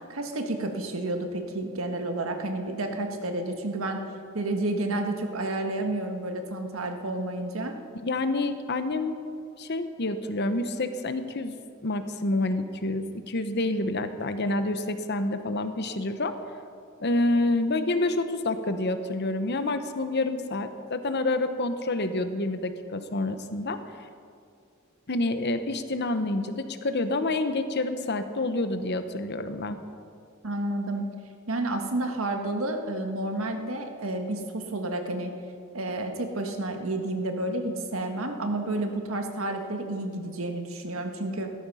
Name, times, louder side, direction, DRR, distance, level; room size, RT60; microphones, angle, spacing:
voice 1, 0.1-4.0 4.3-7.8 30.4-31.1 31.5-35.3 35.7-41.5, right 2 dB, 85° right, 4 dB, 1.6 m, -30 dB
voice 2, 8.0-9.2 9.6-11.6 11.8-16.4 17.0-23.8 25.1-29.8, left 2 dB, 55° left, 9 dB, 1.0 m, -28 dB
16.5 x 13.5 x 5.6 m, 2.3 s
head